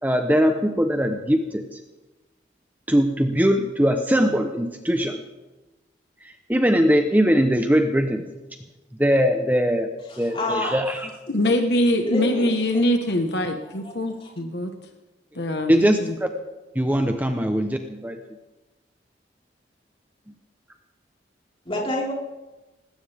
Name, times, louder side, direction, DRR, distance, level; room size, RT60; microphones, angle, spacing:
voice 1, 0.0-1.8 2.9-5.2 6.2-8.3 9.0-11.1 15.7-16.3 16.7-18.2, equal, 10° right, 5 dB, 0.9 m, -21 dB
voice 2, 10.1-10.7 12.0-12.5 13.6-13.9 14.2-14.3 21.6-22.1, left 1 dB, 30° left, -3 dB, 4.6 m, -27 dB
voice 3, 11.3-14.7 15.3-16.1, left 1 dB, 70° left, 5 dB, 1.4 m, -23 dB
19.5 x 16.5 x 3.6 m, 1.1 s
head